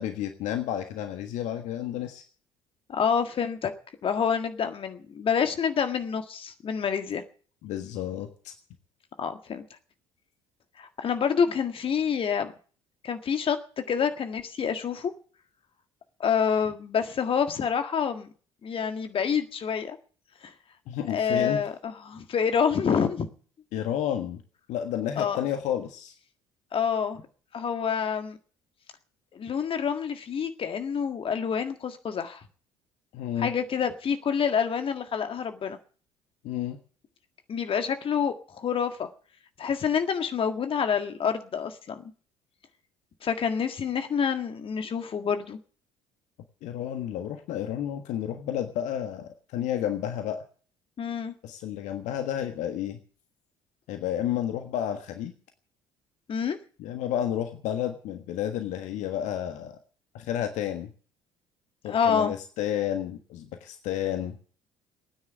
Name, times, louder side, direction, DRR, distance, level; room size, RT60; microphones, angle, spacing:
voice 1, 0.0-2.2 7.6-8.5 20.9-21.6 23.7-24.4 24.7-26.1 33.1-33.5 36.4-36.8 46.6-50.4 51.4-53.0 53.9-55.3 56.8-59.8 60.1-60.9 61.8-64.4, left 10 dB, 55° left, 7 dB, 1.5 m, -31 dB
voice 2, 2.9-3.7 4.0-7.2 9.2-9.6 10.8-12.5 13.0-13.6 13.9-15.1 16.2-18.3 18.6-20.0 20.4-20.5 21.1-23.3 25.2-25.4 26.7-27.2 27.5-28.4 29.3-32.4 33.4-35.8 37.5-39.1 39.6-42.0 43.2-45.6 51.0-51.3 56.3-56.6 61.9-62.3, left 7 dB, 40° left, 7 dB, 1.7 m, -27 dB
17.5 x 9.8 x 8.0 m, 0.43 s
figure-of-eight pair, 50°, 14 cm